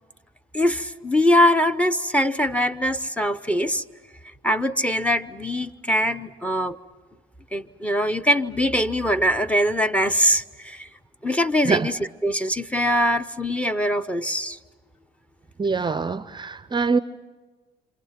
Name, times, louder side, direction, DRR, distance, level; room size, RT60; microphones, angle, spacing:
voice 1, 0.5-3.8 4.4-6.8 7.5-10.9 11.2-14.6, equal, 5° left, 12 dB, 0.9 m, -22 dB
voice 2, 15.6-17.0, right 4 dB, 25° right, 15 dB, 0.7 m, -23 dB
27.5 x 27.0 x 5.9 m, 1.4 s
supercardioid pair, 70°, 19 cm